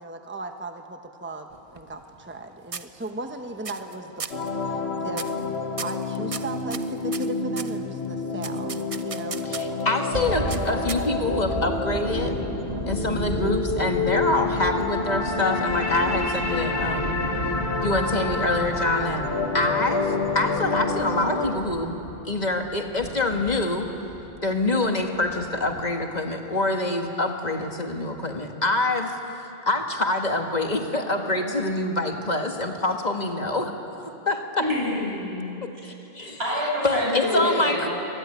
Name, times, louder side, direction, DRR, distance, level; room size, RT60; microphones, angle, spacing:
voice 1, 0.0-4.3 4.6-5.3 5.8-9.4, right 2 dB, 10° right, 5 dB, 1.1 m, -37 dB
sound 1, 1.5-2.4 2.7-3.3 3.6-3.9 4.2-4.5 5.1-5.4 5.8-7.8 8.4-9.8 10.5-11.3, right 5 dB, 40° right, 0.7 m, -36 dB
sound 2, 4.3-21.5, left 3 dB, 80° left, 1.8 m, -28 dB
voice 2, 9.4-12.3 12.8-17.2 17.8-19.2 19.5-21.9 22.3-23.9 24.4-29.2 29.7-33.7 34.3-34.6 35.8-36.4 36.8-37.9, left 2 dB, 45° left, 3 dB, 1.8 m, -25 dB
sound 3, 10.1-25.9, right 2 dB, 70° right, 2.9 m, -34 dB
voice 3, 34.6-35.4 36.4-37.9, left 1 dB, 85° right, -5 dB, 8.5 m, -26 dB
24.5 x 18.0 x 9.9 m, 2.8 s
omnidirectional pair, 1.1 m